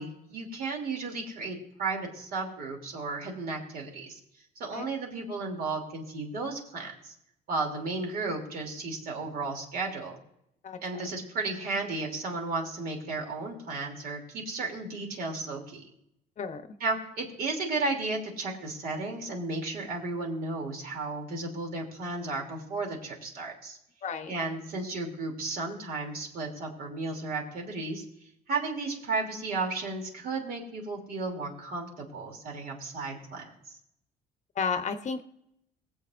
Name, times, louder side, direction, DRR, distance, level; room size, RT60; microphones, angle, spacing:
voice 1, 0.0-4.2 4.6-7.1 7.5-10.2 10.8-15.9 16.8-23.8 24.3-28.0 28.5-33.8, right 3 dB, 60° right, 1 dB, 3.0 m, -34 dB
voice 2, 10.6-11.1 16.4-16.8 24.0-24.3 34.5-35.2, left 5 dB, 45° left, 8 dB, 0.9 m, -33 dB
23.0 x 7.8 x 2.6 m, 0.79 s
cardioid pair, 110°, 17 cm